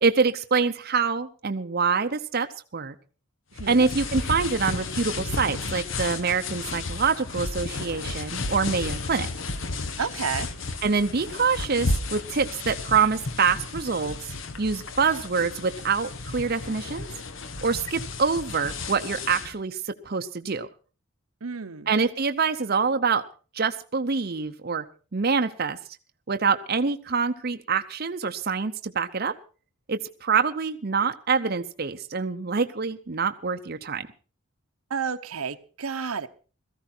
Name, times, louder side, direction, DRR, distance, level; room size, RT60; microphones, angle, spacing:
voice 1, 0.0-2.5 2.7-2.9 3.7-9.3 10.8-17.1 17.6-20.7 21.9-23.2 23.5-24.8 25.1-25.8 26.3-29.3 29.9-34.1, right 5 dB, 45° right, 7 dB, 0.7 m, -25 dB
sound 1, 3.6-19.5, left 3 dB, 60° left, 1.1 m, -33 dB
voice 2, 10.0-10.5 21.4-21.9 34.9-36.3, right 6 dB, 85° right, 9 dB, 0.9 m, -31 dB
17.0 x 14.0 x 4.4 m, 0.38 s
head